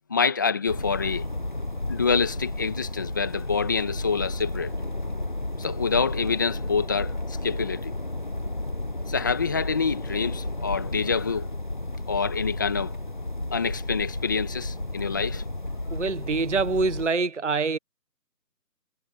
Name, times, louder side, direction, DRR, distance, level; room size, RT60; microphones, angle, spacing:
voice 1, 0.1-1.2 1.9-4.7 5.6-7.9 9.1-11.5 12.1-12.9 13.5-15.5, left 5 dB, 10° left, 1.9 m, -26 dB
sound 1, 0.7-17.1, left 1 dB, 30° left, 1.1 m, -32 dB
voice 2, 15.9-17.8, right 4 dB, 45° right, 1.0 m, -25 dB
figure-of-eight pair, 170°, 50 cm